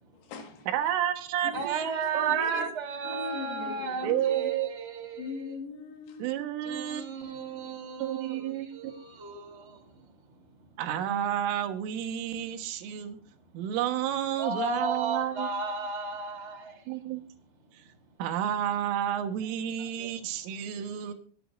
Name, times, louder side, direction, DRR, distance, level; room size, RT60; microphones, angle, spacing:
voice 1, 0.1-0.7 1.4-1.7 2.0-2.7 3.0-4.5 5.2-6.3, left 4 dB, 90° left, 4 dB, 4.7 m, -39 dB
voice 2, 0.7-1.9 2.1-2.7 4.0-4.8 6.2-7.5 8.0-8.9 10.8-13.2 13.5-15.5 16.9-17.2 18.2-21.1, right 10 dB, 75° right, 6 dB, 3.9 m, -30 dB
voice 3, 1.5-5.5 6.6-9.9 14.4-16.8 20.0-20.1 20.7-20.8, right 4 dB, 15° right, 1 dB, 2.7 m, -35 dB
25.0 x 10.0 x 2.6 m, 0.43 s
omnidirectional pair, 5.9 m